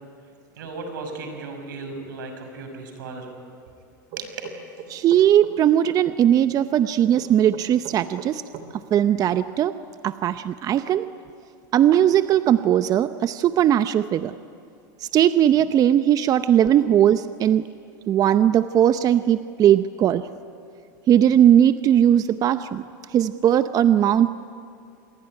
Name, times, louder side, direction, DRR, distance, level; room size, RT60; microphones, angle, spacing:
voice 1, 0.6-3.3 3.6-3.7 4.2-4.3, right 3 dB, 85° right, 5 dB, 6.0 m, -36 dB
sound 1, 4.1-5.6 7.1-8.7, right 10 dB, 60° right, 3.5 m, -39 dB
voice 2, 4.9-8.4 8.7-9.8 10.0-11.1 11.7-14.3 15.0-17.6 18.1-20.3 21.1-22.8 23.1-24.4, right 10 dB, 35° right, 12 dB, 0.7 m, -19 dB
26.5 x 21.0 x 10.0 m, 2.4 s
supercardioid pair, 115°, 10 cm